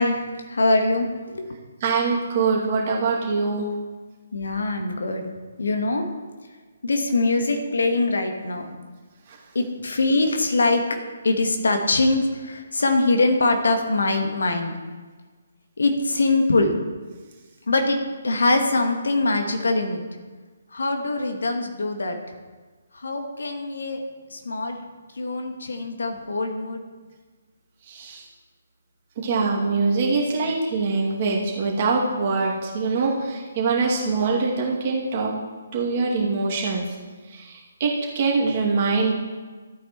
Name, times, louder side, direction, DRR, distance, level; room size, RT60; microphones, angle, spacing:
voice 1, 0.0-1.5 4.3-5.2 5.6-6.1 6.8-8.7 9.5-10.8 11.2-14.8 15.8-16.7 17.7-20.0 20.7-22.2 22.9-24.0 24.3-24.8 25.1-26.8, left 2 dB, 65° left, 5 dB, 1.4 m, -23 dB
voice 2, 1.8-3.7 9.3-9.4 27.9-28.2 29.2-35.3 35.7-36.8 37.3-39.1, right 4 dB, 35° right, -3 dB, 2.4 m, -23 dB
14.0 x 8.9 x 3.1 m, 1.4 s
figure-of-eight pair, 140°, 0 cm